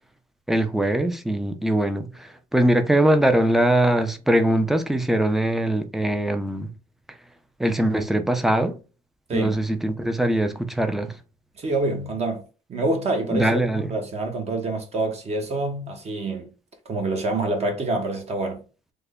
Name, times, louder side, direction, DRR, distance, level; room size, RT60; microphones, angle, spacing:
voice 1, 0.5-6.7 7.6-8.8 9.3-11.1 13.3-13.9, right 1 dB, ahead, 0.4 m, -22 dB
voice 2, 11.6-12.4 12.7-16.5 16.9-18.6, right 2 dB, 40° right, 0.9 m, -26 dB
3.3 x 2.1 x 3.5 m
cardioid pair, 110°, 17 cm